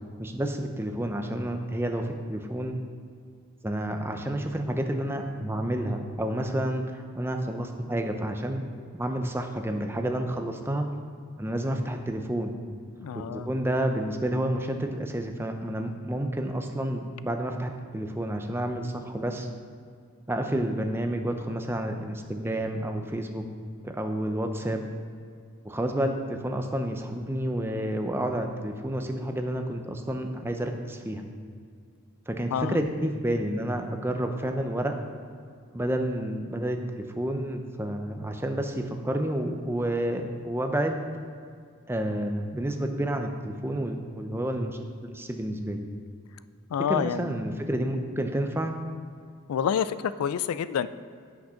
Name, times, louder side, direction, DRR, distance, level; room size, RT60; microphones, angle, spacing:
voice 1, 0.2-2.8 3.6-8.6 8.9-10.9 11.4-12.5 13.3-19.5 20.3-23.4 23.8-24.9 25.6-31.2 32.3-34.9 35.7-41.1 41.9-45.8 46.9-48.8, right 1 dB, 10° right, 5 dB, 0.5 m, -30 dB
voice 2, 13.0-13.5 32.5-32.8 46.7-47.3 49.5-50.9, left 8 dB, 85° left, 15 dB, 0.3 m, -28 dB
8.9 x 6.0 x 5.6 m, 2.2 s
head